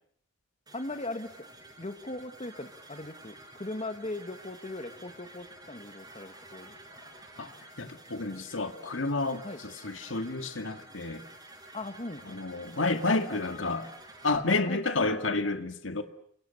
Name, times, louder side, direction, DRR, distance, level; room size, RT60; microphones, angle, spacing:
voice 1, 0.7-1.5 1.8-7.2 9.4-9.6 11.7-12.4 12.8-13.7 14.3-15.2, left 2 dB, 35° left, 1.8 m, -40 dB
sound 1, 0.7-14.4, right 1 dB, 20° right, 6.0 m, -51 dB
voice 2, 7.8-11.2 12.3-13.9 14.2-16.0, left 3 dB, 75° left, 2.1 m, -30 dB
29.0 x 26.0 x 7.1 m
head